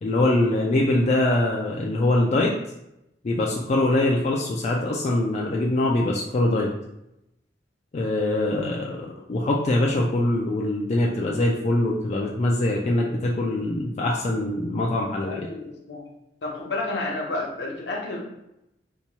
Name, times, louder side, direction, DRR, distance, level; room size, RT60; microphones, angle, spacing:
voice 1, 0.0-2.5 3.2-6.7 7.9-15.5, left 1 dB, 40° left, -2 dB, 0.3 m, -23 dB
voice 2, 15.2-16.1 16.4-18.2, left 2 dB, 70° left, -1 dB, 0.7 m, -31 dB
2.8 x 2.2 x 4.1 m, 0.86 s
head